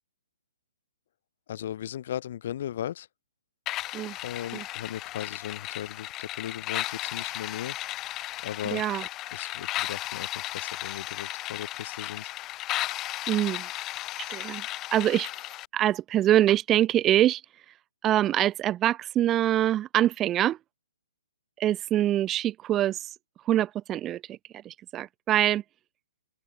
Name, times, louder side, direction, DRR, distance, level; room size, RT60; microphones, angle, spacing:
voice 1, 1.5-3.1 4.2-7.8 8.4-8.8 9.3-12.3, left 11 dB, 50° left, 2.7 m, -37 dB
sound 1, 3.7-15.7, left 16 dB, 20° left, 0.7 m, -35 dB
voice 2, 8.7-9.0 13.3-13.7 14.2-14.6 14.9-15.3 15.7-17.4 18.0-20.6 21.6-23.2 23.5-24.4 24.6-25.6, right 12 dB, 15° right, 0.4 m, -24 dB
open air
hypercardioid pair, 155°, 0 cm